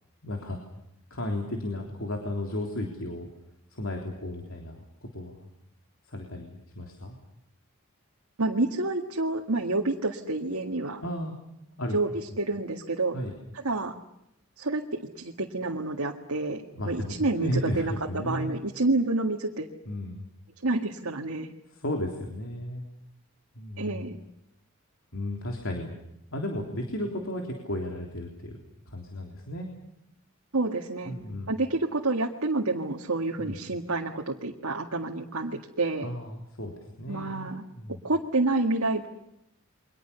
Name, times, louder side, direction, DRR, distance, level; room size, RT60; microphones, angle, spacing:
voice 1, 0.2-0.6 1.1-3.3 3.7-5.5 6.1-7.2 11.0-11.3 11.8-12.0 13.1-13.3 16.7-18.5 19.9-20.3 21.7-22.9 23.6-24.1 25.1-25.9 26.3-28.6 28.9-29.7 31.1-31.5 33.4-33.6 36.0-37.5 37.8-38.0, left 1 dB, 70° left, 2 dB, 3.6 m, -34 dB
voice 2, 8.4-11.0 11.9-12.1 12.4-13.2 13.6-13.9 14.6-19.7 20.6-21.5 23.8-24.2 30.5-31.1 31.5-36.1 37.1-37.6 38.0-39.1, right 2 dB, 90° right, 1 dB, 1.9 m, -28 dB
29.5 x 24.0 x 7.0 m, 0.82 s
head